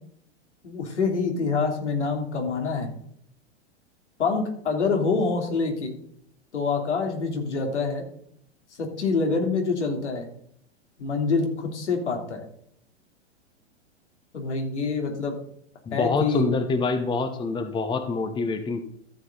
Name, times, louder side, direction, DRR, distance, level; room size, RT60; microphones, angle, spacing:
voice 1, 0.6-2.9 4.2-5.9 6.5-8.0 8.8-10.3 11.0-12.5 14.3-15.3 15.9-16.5, left 4 dB, 80° left, 2 dB, 3.3 m, -26 dB
voice 2, 15.9-18.8, left 4 dB, 15° left, 9 dB, 0.9 m, -26 dB
13.5 x 7.8 x 4.0 m, 0.66 s
hypercardioid pair, 110°, 34 cm